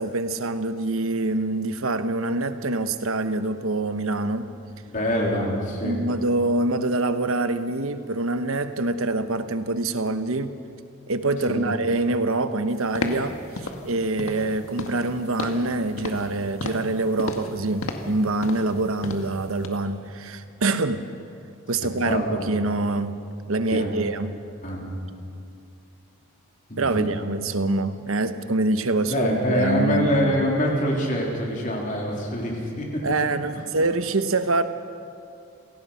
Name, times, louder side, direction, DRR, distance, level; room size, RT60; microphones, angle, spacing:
voice 1, 0.0-4.5 5.8-10.6 11.1-13.4 13.8-21.1 21.7-24.4 26.8-30.4 33.0-34.6, right 2 dB, 75° right, 10 dB, 1.1 m, -25 dB
voice 2, 4.9-6.0 11.5-11.7 22.0-22.5 23.7-23.9 24.6-25.0 26.7-27.1 29.0-33.0, equal, 35° left, -1 dB, 3.6 m, -25 dB
sound 1, 12.9-13.3 13.6-13.8 14.2-14.5 14.8-15.1 15.4-15.7 16.0-16.3 16.6-16.9 17.2-17.5 17.8-18.1 18.4-18.7 19.0-19.3 19.6-19.7, left 2 dB, 80° left, 1.8 m, -32 dB
28.0 x 18.0 x 5.7 m, 2.4 s
head